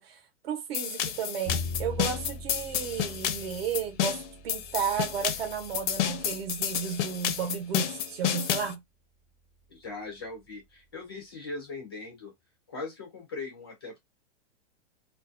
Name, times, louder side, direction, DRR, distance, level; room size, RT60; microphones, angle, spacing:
voice 1, 0.0-8.8, right 8 dB, 55° right, 0.8 m, -33 dB
sound 1, 0.7-8.7, left 10 dB, 75° left, 0.6 m, -31 dB
Bowed string instrument, 1.4-7.6, left 3 dB, 20° right, 0.8 m, -41 dB
voice 2, 9.7-12.3 12.7-14.0, left 3 dB, 20° left, 0.3 m, -40 dB
2.4 x 2.2 x 2.4 m
supercardioid pair, 175°, 36 cm